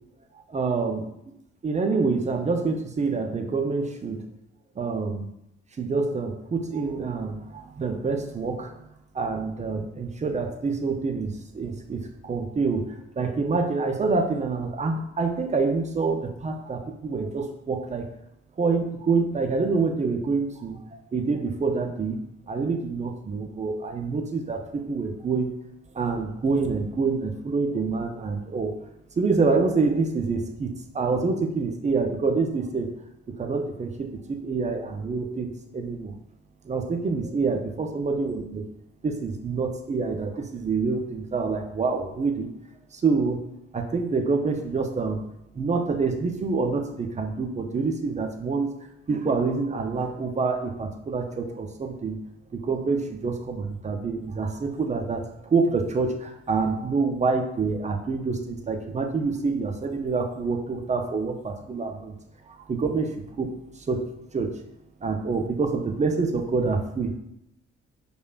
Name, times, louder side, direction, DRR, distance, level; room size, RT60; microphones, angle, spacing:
voice 1, 0.5-1.1 1.6-4.3 4.8-5.3 5.8-18.1 18.6-22.2 22.5-25.5 25.9-28.7 29.2-32.9 33.3-36.1 36.6-38.7 39.0-42.5 42.9-43.4 43.7-45.2 45.5-48.7 49.1-52.2 52.5-62.1 62.5-64.6 65.0-67.2, right 4 dB, 20° right, 5 dB, 0.4 m, -27 dB
4.7 x 2.2 x 2.3 m, 0.81 s
figure-of-eight pair, 40°, 35 cm